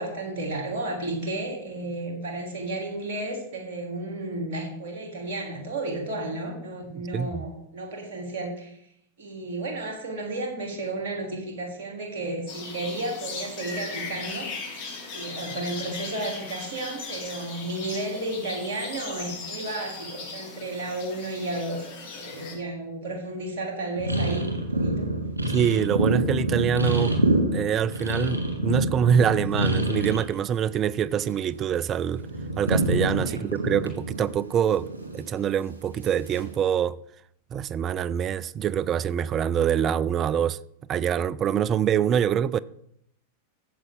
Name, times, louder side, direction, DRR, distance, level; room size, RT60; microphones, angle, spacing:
voice 1, 0.0-8.8 9.2-14.5 15.1-21.9 22.1-25.1 33.2-33.4, right 2 dB, 55° right, 2.9 m, -33 dB
voice 2, 6.9-7.5 25.5-27.1 27.5-32.2 32.6-34.9 35.1-37.0 37.5-40.6 40.9-42.6, right 8 dB, 30° right, 0.4 m, -25 dB
sound 1, 12.5-22.5, left 4 dB, 50° left, 3.2 m, -38 dB
sound 2, 24.0-30.3 30.6-31.7 31.9-35.5 36.3-36.6, right 1 dB, 80° right, 2.5 m, -26 dB
14.0 x 7.8 x 3.7 m
figure-of-eight pair, 90°, 0 cm